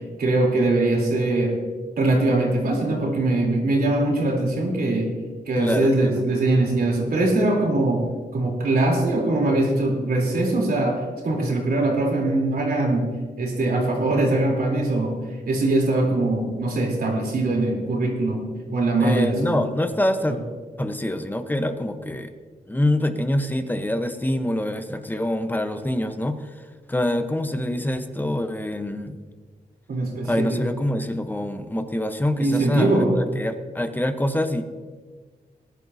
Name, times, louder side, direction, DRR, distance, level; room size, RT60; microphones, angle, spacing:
voice 1, 0.2-1.5 2.0-5.1 5.5-8.0 8.3-13.1 13.4-15.2 15.5-19.6 20.3-20.4 29.9-30.7 32.4-33.2, right 2 dB, 75° right, 0 dB, 3.4 m, -22 dB
voice 2, 5.6-6.2 19.0-20.4 20.8-22.3 22.7-26.4 26.9-29.2 30.2-33.1 33.4-34.6, left 1 dB, 10° left, 8 dB, 0.9 m, -25 dB
19.5 x 11.5 x 2.7 m, 1.5 s
wide cardioid pair, 95°, 16 cm